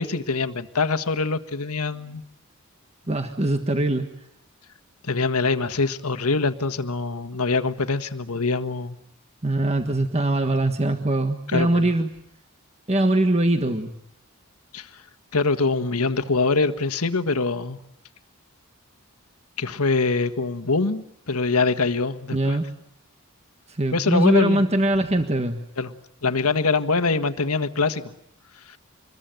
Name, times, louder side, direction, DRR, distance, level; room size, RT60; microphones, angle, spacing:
voice 1, 0.0-2.2 5.0-9.0 11.5-11.9 14.7-15.0 15.3-17.8 19.6-22.6 23.9-24.6 25.8-25.9 26.2-28.1 28.7-28.8, left 3 dB, 80° left, 10 dB, 1.6 m, -24 dB
voice 2, 3.1-4.1 9.4-12.1 12.9-13.9 22.3-22.6 23.8-25.6, right 1 dB, 30° right, 6 dB, 1.5 m, -22 dB
27.5 x 22.0 x 9.1 m, 0.74 s
head